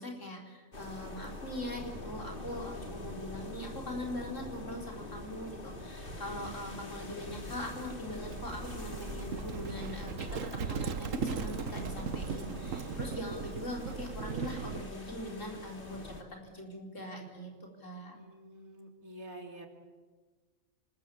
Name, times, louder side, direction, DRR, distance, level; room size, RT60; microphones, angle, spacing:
voice 1, 0.0-18.2, left 1 dB, 65° left, 1 dB, 4.6 m, -42 dB
sound 1, 0.7-16.2, left 2 dB, 40° left, 2.6 m, -44 dB
Livestock farm animals working animals, 8.2-14.9, right 6 dB, 70° right, 1.5 m, -38 dB
voice 2, 18.1-19.7, right 1 dB, 90° right, 3 dB, 3.6 m, -48 dB
26.0 x 20.5 x 8.5 m, 1.4 s
omnidirectional pair, 1.4 m